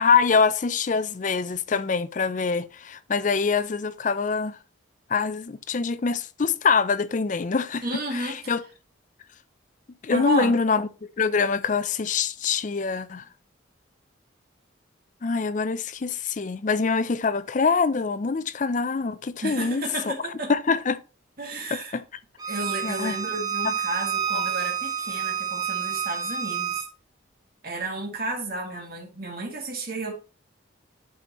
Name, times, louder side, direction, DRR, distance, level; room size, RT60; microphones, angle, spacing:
voice 1, 0.0-4.6 5.1-7.8 8.1-8.6 10.0-10.9 11.2-13.2 15.2-20.1 20.5-21.0 21.7-22.0 22.8-23.1 23.6-23.7 24.3-24.5, left 5 dB, 40° left, 0.4 m, -24 dB
voice 2, 7.8-8.6 10.1-10.6 19.4-20.5 21.4-22.0 22.5-26.9 27.6-30.1, right 2 dB, 50° right, 1.9 m, -32 dB
Bowed string instrument, 22.4-26.8, right 8 dB, 20° right, 0.7 m, -29 dB
11.0 x 4.2 x 3.0 m
head